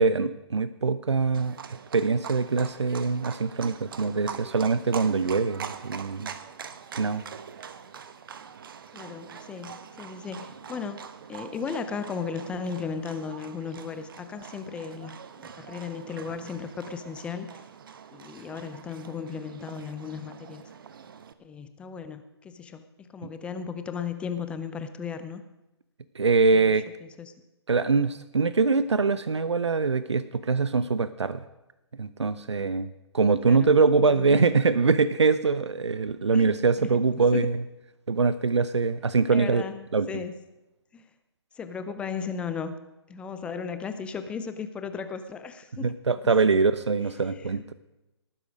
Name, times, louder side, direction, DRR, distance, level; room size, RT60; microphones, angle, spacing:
voice 1, 0.0-1.6 1.9-6.3 6.9-7.2 26.1-26.8 27.7-31.4 32.0-32.9 33.1-37.6 38.1-39.6 39.9-40.1 45.8-47.7, right 4 dB, 80° right, 14 dB, 0.6 m, -23 dB
Livestock farm animals working animals, 1.3-21.3, right 7 dB, 50° right, 1.1 m, -43 dB
voice 2, 8.9-11.0 11.3-17.7 18.1-20.6 21.4-25.4 26.5-26.7 27.0-27.3 33.4-33.7 34.1-34.6 36.3-36.9 37.3-37.5 39.3-40.3 40.9-41.1 41.5-42.7 43.1-45.9 47.2-47.6, left 6 dB, 10° left, 10 dB, 0.5 m, -36 dB
18.5 x 9.9 x 5.1 m, 0.98 s
figure-of-eight pair, 140°, 14 cm